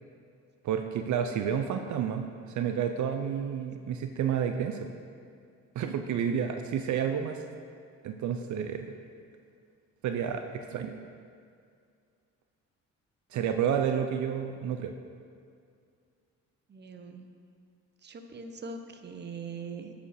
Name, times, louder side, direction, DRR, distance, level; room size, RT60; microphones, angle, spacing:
voice 1, 0.6-4.9 5.7-7.4 8.0-8.9 10.0-10.9 13.3-14.9, right 8 dB, 70° right, 6 dB, 0.6 m, -30 dB
voice 2, 16.7-17.3 18.0-19.9, right 4 dB, 35° right, 6 dB, 0.8 m, -42 dB
10.0 x 5.2 x 6.5 m, 2.3 s
cardioid pair, 90°, 30 cm